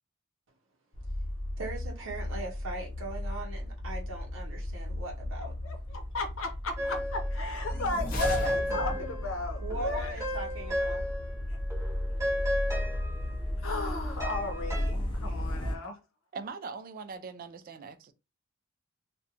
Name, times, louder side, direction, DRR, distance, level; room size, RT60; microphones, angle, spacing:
sound 1, 0.9-15.8, left 1 dB, 25° left, 0.4 m, -35 dB
voice 1, 1.6-5.5 9.6-11.1, right 3 dB, 65° right, 0.7 m, -40 dB
voice 2, 5.6-10.1 13.6-16.0, left 2 dB, 75° left, 0.7 m, -35 dB
sound 2, 6.8-7.4 7.7-11.4 11.7-14.9, equal, 15° right, 0.9 m, -34 dB
sound 3, 7.5-9.3, equal, 45° left, 0.8 m, -35 dB
voice 3, 16.3-18.1, right 4 dB, 45° right, 0.3 m, -41 dB
2.4 x 2.2 x 2.8 m
head